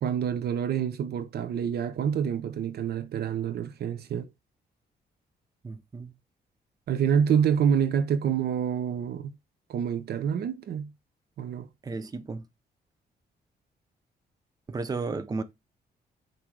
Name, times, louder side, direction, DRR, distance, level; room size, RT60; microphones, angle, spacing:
voice 1, 0.0-4.3 6.9-9.3 9.7-10.9 11.4-11.7, right 8 dB, 70° right, 0.7 m, -27 dB
voice 2, 5.6-6.1 11.8-12.4 14.7-15.4, right 3 dB, 20° right, 0.7 m, -33 dB
6.1 x 3.3 x 4.7 m
cardioid pair, 120°, 17 cm